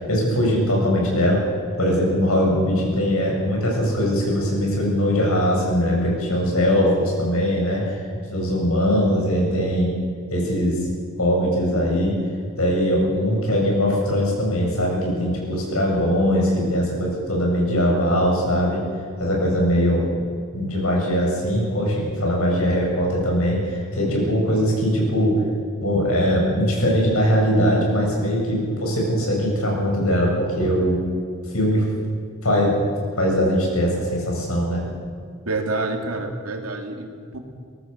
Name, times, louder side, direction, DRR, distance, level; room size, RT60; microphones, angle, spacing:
voice 1, 0.1-1.5 1.8-8.0 8.3-9.9 10.3-10.8 11.2-12.2 12.6-18.9 19.2-20.1 20.5-25.4 25.8-31.0 31.5-31.8 32.4-32.8 33.2-34.9, equal, 80° left, -1 dB, 7.8 m, -21 dB
voice 2, 35.5-37.4, right 2 dB, 85° right, 4 dB, 2.8 m, -28 dB
23.5 x 18.0 x 6.8 m, 2.2 s
head